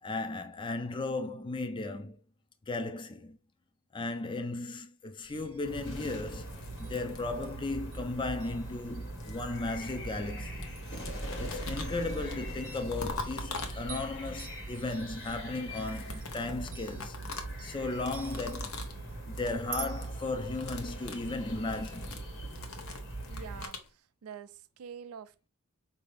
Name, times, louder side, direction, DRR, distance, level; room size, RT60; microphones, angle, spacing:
voice 1, 0.0-2.2 2.7-3.4 3.9-10.7 11.4-17.2 17.6-18.8 19.3-22.2, left 2 dB, 20° left, 0.4 m, -36 dB
sound 1, 5.2-20.3, right 7 dB, 40° right, 0.6 m, -51 dB
sound 2, 5.6-23.7, right 1 dB, 55° left, 1.4 m, -41 dB
sound 3, 6.2-7.8 8.7-10.3 10.6-14.2 15.7-19.0 19.3-19.6 19.9-20.2 20.5-23.9, left 4 dB, 75° left, 0.9 m, -44 dB
voice 2, 23.3-25.5, right 7 dB, 80° right, 0.4 m, -47 dB
4.9 x 2.7 x 3.3 m
head